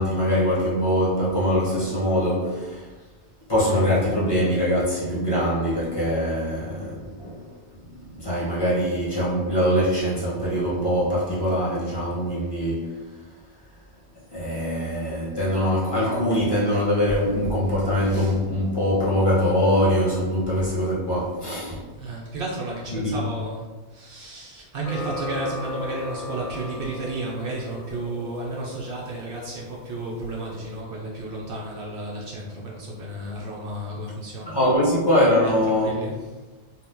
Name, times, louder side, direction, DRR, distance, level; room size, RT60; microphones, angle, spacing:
voice 1, 0.0-2.9 3.5-7.5 7.9-13.0 14.3-21.8 22.9-23.1 34.5-36.0, equal, 25° left, 0.9 m, -23 dB
voice 2, 22.0-34.6 35.4-36.3, right 2 dB, 60° right, 0.7 m, -33 dB
sound 1, 24.8-30.8, left 2 dB, 50° left, 0.5 m, -37 dB
2.7 x 2.2 x 3.5 m
omnidirectional pair, 1.2 m